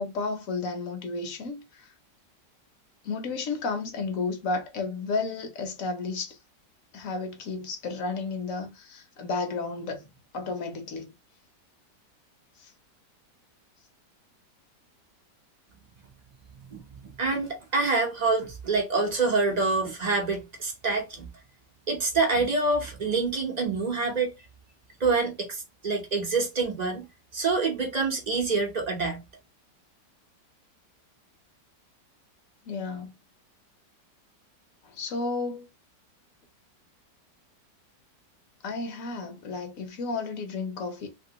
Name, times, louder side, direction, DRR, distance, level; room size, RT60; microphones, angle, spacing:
voice 1, 0.0-1.9 3.0-6.4 6.9-10.0 10.3-11.1 12.6-12.7 32.6-33.1 34.8-35.7 38.6-41.1, left 3 dB, 60° left, 1.0 m, -32 dB
voice 2, 17.2-21.3 21.9-24.3 25.0-27.0 27.3-29.2, right 3 dB, 50° right, 0.5 m, -26 dB
2.9 x 2.8 x 2.8 m
omnidirectional pair, 1.9 m